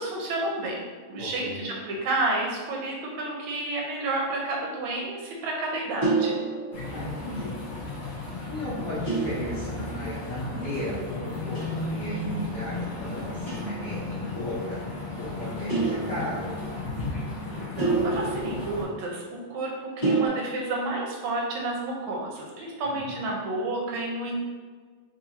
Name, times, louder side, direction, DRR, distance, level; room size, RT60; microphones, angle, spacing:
voice 1, 0.0-6.4 17.8-24.4, right 2 dB, 75° right, -2 dB, 2.0 m, -30 dB
voice 2, 1.2-1.6 6.9-7.5 8.5-14.8 15.2-16.6 22.8-23.0, left 1 dB, 65° left, -11 dB, 1.5 m, -35 dB
sound 1, 6.0-7.3 9.1-10.2 11.5-12.0 13.5-13.9 15.7-16.8 17.8-19.4 20.0-20.3, right 3 dB, 35° left, 0.7 m, -29 dB
sound 2, 6.7-18.8, left 2 dB, 90° left, 1.1 m, -35 dB
4.6 x 2.6 x 2.7 m, 1.5 s
omnidirectional pair, 3.5 m